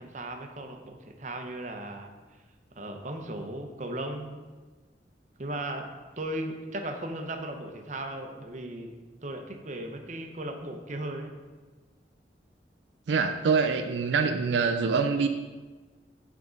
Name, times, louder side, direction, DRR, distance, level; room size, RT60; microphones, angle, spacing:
voice 1, 0.0-2.1 2.8-4.3 5.4-5.8 6.2-8.9 9.2-11.3, right 1 dB, 45° right, 4 dB, 0.7 m, -36 dB
voice 2, 13.1-15.3, right 5 dB, 90° right, 7 dB, 0.4 m, -25 dB
11.0 x 3.7 x 3.9 m, 1.3 s
head